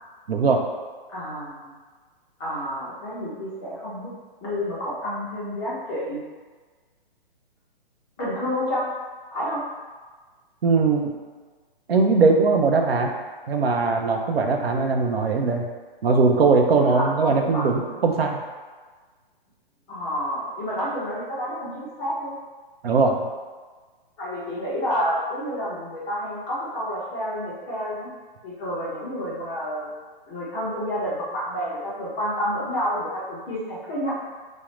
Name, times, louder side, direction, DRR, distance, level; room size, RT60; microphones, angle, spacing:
voice 1, 0.3-0.6 10.6-11.1 11.9-13.1 13.5-15.6 16.0-18.4 22.8-23.3, right 4 dB, 85° right, 2 dB, 0.6 m, -20 dB
voice 2, 1.1-1.7 2.4-4.1 4.4-6.2 8.2-8.8 9.3-9.6 16.8-18.0 19.9-22.4 24.2-28.1 28.4-29.9 30.3-34.1, equal, 15° left, -8 dB, 0.5 m, -29 dB
3.7 x 2.1 x 3.1 m, 1.4 s
hypercardioid pair, 150°, 29 cm